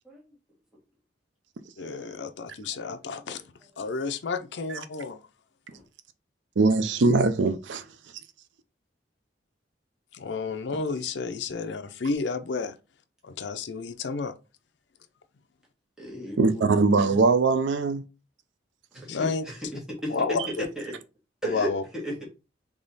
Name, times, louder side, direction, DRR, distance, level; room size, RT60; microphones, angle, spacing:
voice 1, 1.8-3.4 3.8-5.2 10.1-12.8 13.2-14.3 19.1-19.4 20.1-20.7 21.4-21.8, left 4 dB, 70° left, 0.5 m, -31 dB
voice 2, 6.6-7.9 16.4-18.0, right 3 dB, 80° right, 0.5 m, -21 dB
voice 3, 16.0-16.8 18.9-20.9 21.4-22.2, equal, 5° right, 1.4 m, -35 dB
3.6 x 3.3 x 4.0 m
head